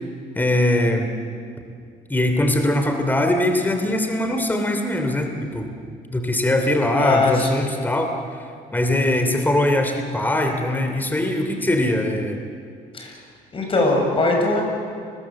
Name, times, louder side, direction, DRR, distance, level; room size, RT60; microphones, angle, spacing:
voice 1, 0.3-1.1 2.1-5.7 6.1-8.1 8.7-12.4, left 1 dB, 10° left, 5 dB, 2.9 m, -21 dB
voice 2, 6.9-7.7 12.9-13.1 13.5-14.6, left 3 dB, 30° left, 1 dB, 7.3 m, -20 dB
29.5 x 22.0 x 7.7 m, 2.2 s
cardioid pair, 110°, 17 cm